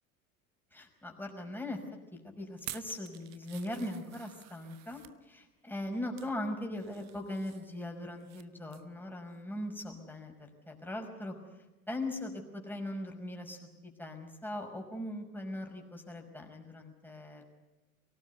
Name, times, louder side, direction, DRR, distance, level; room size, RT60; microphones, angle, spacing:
voice 1, 0.7-1.8 2.2-11.4 11.9-17.4, left 1 dB, 5° left, 2 dB, 5.5 m, -40 dB
sound 1, 2.5-5.2 5.8-6.3 6.7-8.4 8.7-8.9 9.3-9.4, right 13 dB, 40° right, 1.2 m, -50 dB
23.5 x 18.5 x 9.5 m, 1.1 s
figure-of-eight pair, 75°, 42 cm